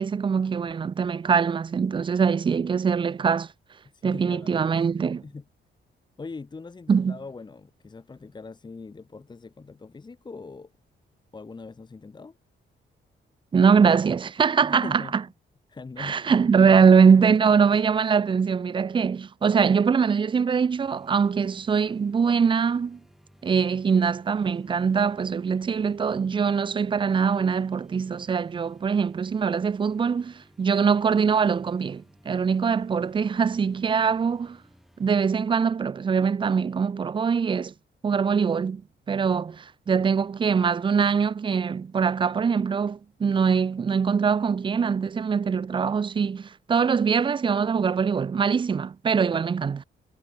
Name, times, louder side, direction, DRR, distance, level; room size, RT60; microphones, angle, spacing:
voice 1, 0.0-3.5 4.0-5.2 6.9-7.2 13.5-15.0 16.0-23.0 23.4-34.6 35.0-37.7 38.0-38.8 39.1-49.8, right 6 dB, 25° right, 0.4 m, -22 dB
voice 2, 3.9-5.5 6.2-10.7 11.3-12.4 14.6-15.2 15.7-16.2, left 4 dB, 25° left, 1.4 m, -41 dB
sound 1, 20.6-35.3, equal, ahead, 4.2 m, -57 dB
wide cardioid pair, 145°, 19 cm